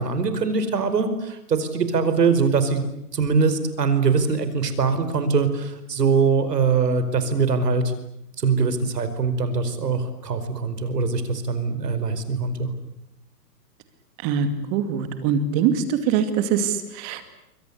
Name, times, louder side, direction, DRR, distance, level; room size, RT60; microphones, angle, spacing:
voice 1, 0.0-2.8 3.1-7.9 8.4-12.7, right 5 dB, 75° right, 10 dB, 5.0 m, -22 dB
voice 2, 14.2-17.3, right 7 dB, 20° right, 10 dB, 2.3 m, -23 dB
28.5 x 24.0 x 8.4 m, 0.83 s
hypercardioid pair, 160°, 49 cm